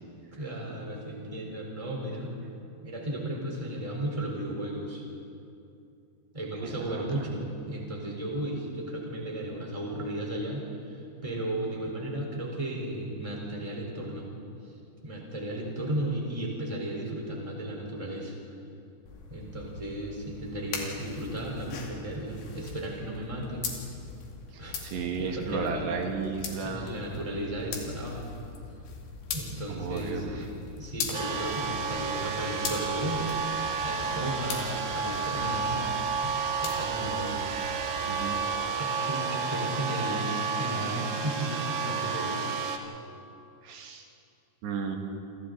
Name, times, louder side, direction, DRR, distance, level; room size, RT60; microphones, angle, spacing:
voice 1, 0.3-2.3 2.8-5.1 6.3-10.6 10.9-14.3 15.0-18.4 19.3-23.6 24.6-24.8 25.2-25.9 26.6-28.3 29.3-30.5 30.8-33.6 33.8-35.9 36.2-37.3 38.4-42.4, right 1 dB, 10° right, -2 dB, 3.7 m, -34 dB
voice 2, 6.6-7.3 24.5-27.0 29.7-30.5 38.1-38.4 43.6-44.1 44.6-45.0, right 5 dB, 80° right, 2 dB, 3.9 m, -34 dB
sound 1, 19.1-38.5, left 5 dB, 85° left, 4.7 m, -41 dB
sound 2, 31.1-42.8, right 5 dB, 60° right, 2.6 m, -31 dB
29.0 x 26.0 x 4.0 m, 2.6 s
omnidirectional pair, 4.9 m